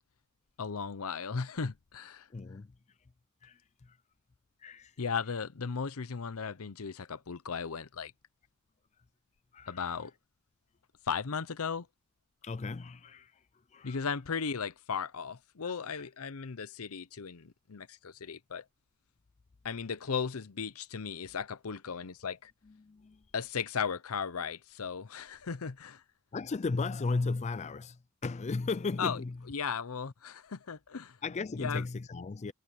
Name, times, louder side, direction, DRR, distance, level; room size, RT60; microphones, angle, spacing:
voice 1, 0.6-2.3 5.0-8.1 9.7-10.1 11.0-11.9 13.8-18.6 19.6-22.5 23.3-26.0 29.0-29.2 29.5-31.2 31.6-31.8, left 6 dB, 80° left, 0.7 m, -36 dB
voice 2, 2.3-2.7 3.4-4.0 4.6-4.9 9.5-9.8 12.4-13.4 13.7-14.0 15.9-16.0 22.7-23.2 26.3-29.4 31.2-32.5, left 3 dB, 30° left, 0.4 m, -35 dB
head